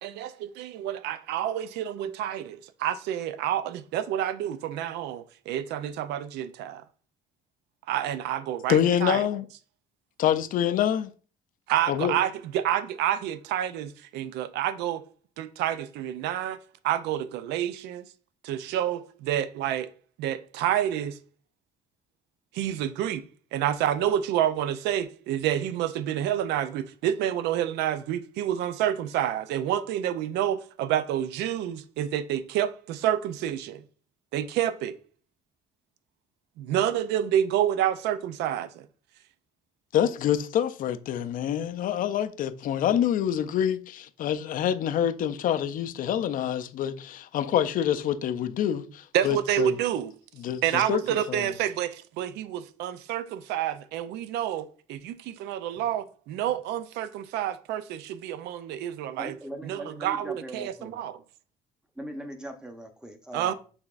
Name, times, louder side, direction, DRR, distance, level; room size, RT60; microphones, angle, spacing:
voice 1, 0.0-6.8 7.9-9.3 11.7-15.0 15.4-16.6 16.8-18.1 18.4-19.9 20.2-21.2 22.5-23.2 23.5-33.8 34.3-34.9 36.6-38.9 49.1-50.1 50.6-59.3 59.6-61.2 63.3-63.5, right 11 dB, 85° right, 0.4 m, -28 dB
voice 2, 8.7-9.4 10.2-11.1 11.9-12.1 39.9-49.8 50.4-51.0 51.3-51.5, left 10 dB, 55° left, 0.4 m, -26 dB
voice 3, 59.2-61.0 62.0-63.5, right 1 dB, 5° right, 0.7 m, -40 dB
5.8 x 3.4 x 2.4 m
cardioid pair, 110°, 17 cm